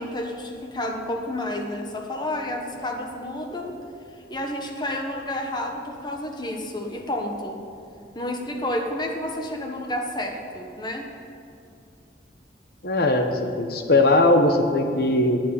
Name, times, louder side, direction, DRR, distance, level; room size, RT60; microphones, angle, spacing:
voice 1, 0.0-3.8 4.3-7.6 8.1-11.1, left 1 dB, 25° left, 2 dB, 1.2 m, -30 dB
voice 2, 12.8-13.3 13.6-15.4, left 2 dB, 55° left, 5 dB, 1.2 m, -19 dB
11.0 x 8.5 x 8.9 m, 2.5 s
head